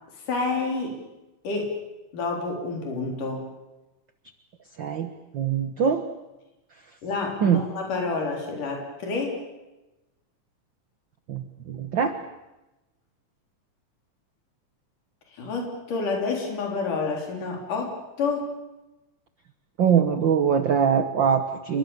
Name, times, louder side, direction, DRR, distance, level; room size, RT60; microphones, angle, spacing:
voice 1, 0.3-1.0 1.4-1.8 2.1-3.5 7.0-9.4 15.4-18.5, left 4 dB, 80° left, 1 dB, 5.3 m, -29 dB
voice 2, 4.8-6.1 7.4-7.6 11.3-12.2 19.8-21.8, right 7 dB, 50° right, 9 dB, 1.5 m, -23 dB
30.0 x 23.0 x 7.1 m, 1.0 s
omnidirectional pair, 3.6 m